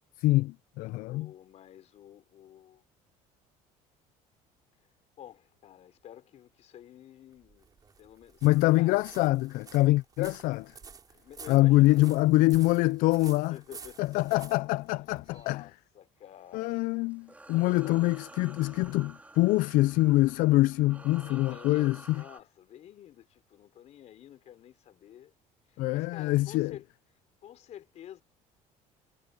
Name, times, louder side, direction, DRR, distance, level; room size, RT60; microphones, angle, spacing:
voice 1, 0.2-1.3 8.4-10.7 11.5-13.6 14.0-15.6 16.5-22.2 25.8-26.7, left 19 dB, 70° left, 0.4 m, -25 dB
voice 2, 0.9-2.8 5.2-7.7 8.0-9.0 11.1-12.2 13.3-14.6 15.3-16.8 17.5-18.1 20.8-25.3 25.7-26.9 27.4-28.2, left 11 dB, 50° left, 3.5 m, -50 dB
sound 1, 7.3-15.5, right 5 dB, 25° right, 4.3 m, -51 dB
sound 2, 16.4-22.4, right 2 dB, 10° right, 3.9 m, -51 dB
cardioid pair, 125°, 14 cm